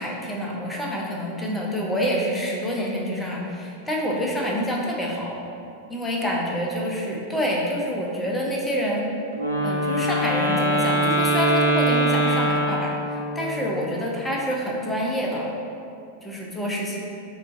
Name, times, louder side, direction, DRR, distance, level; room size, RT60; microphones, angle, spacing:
voice 1, 0.0-5.4 5.9-9.1 9.6-15.5 16.2-17.0, equal, 5° left, -3 dB, 0.5 m, -27 dB
Wind instrument woodwind instrument, 9.3-13.4, right 1 dB, 80° right, 0.4 m, -22 dB
3.7 x 2.2 x 2.5 m, 2.5 s
figure-of-eight pair, 90°, 0 cm